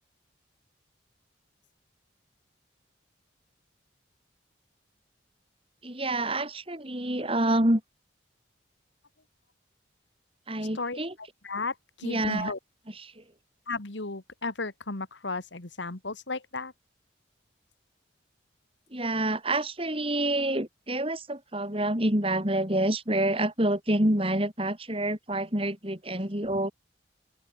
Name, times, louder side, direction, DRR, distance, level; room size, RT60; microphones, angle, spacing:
voice 1, 5.8-7.8 10.5-11.1 12.0-12.5 13.0-13.2 18.9-26.7, right 1 dB, 30° right, 4.9 m, -27 dB
voice 2, 10.7-12.6 13.7-16.7, left 3 dB, 75° left, 2.1 m, -34 dB
open air
head